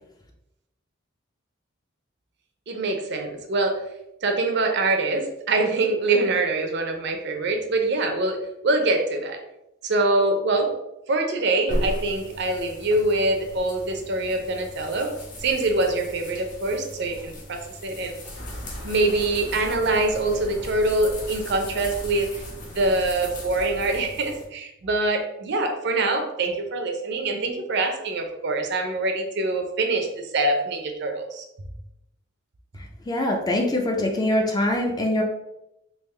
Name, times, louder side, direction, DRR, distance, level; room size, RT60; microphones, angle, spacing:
voice 1, 2.7-3.8 4.2-8.4 8.6-9.4 9.8-10.7 11.1-15.1 15.4-18.1 18.8-22.4 22.7-31.5, right 2 dB, 55° right, 4 dB, 0.5 m, -24 dB
sound 1, 11.7-24.4, equal, 40° left, 0.8 m, -37 dB
sound 2, 18.3-24.1, equal, 65° left, 0.9 m, -40 dB
voice 2, 32.8-35.2, left 1 dB, 20° left, 2 dB, 0.4 m, -24 dB
3.5 x 2.5 x 3.1 m, 0.88 s
head